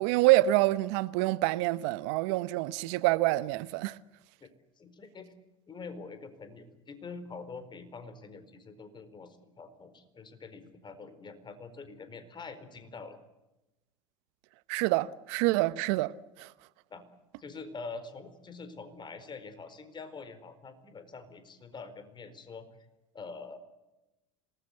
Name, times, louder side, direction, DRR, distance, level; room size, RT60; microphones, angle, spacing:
voice 1, 0.0-4.0 14.7-16.1 16.4-16.5, right 17 dB, 65° right, 1.0 m, -26 dB
voice 2, 4.8-5.3 5.7-13.2 16.9-17.1 17.4-22.9 23.1-23.6, left 4 dB, 30° left, 4.5 m, -45 dB
26.5 x 19.5 x 8.2 m
hypercardioid pair, 75°, 16 cm